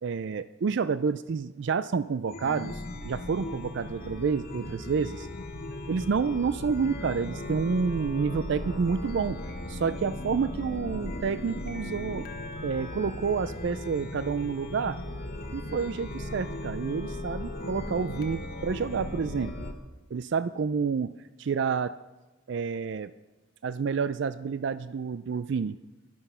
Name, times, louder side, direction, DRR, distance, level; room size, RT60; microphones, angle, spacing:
voice 1, 0.0-5.3 5.9-9.4 9.7-12.3 12.6-15.0 15.5-19.5 20.1-21.1 21.4-21.9 22.5-23.1 23.6-25.8, right 5 dB, 60° right, 14 dB, 0.4 m, -29 dB
Chime, 2.3-19.7, left 1 dB, 45° left, 1.2 m, -37 dB
16.5 x 12.0 x 5.5 m, 1.1 s
head